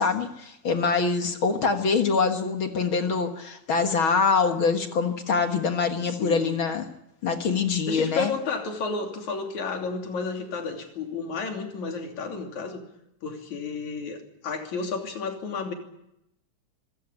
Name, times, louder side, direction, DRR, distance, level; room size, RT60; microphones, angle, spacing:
voice 1, 0.0-6.9 7.2-8.3, left 5 dB, 50° left, 6 dB, 2.0 m, -24 dB
voice 2, 6.1-6.6 7.9-12.8 13.2-15.7, left 4 dB, 70° left, 3 dB, 4.4 m, -32 dB
26.5 x 16.5 x 9.9 m, 0.83 s
omnidirectional pair, 3.5 m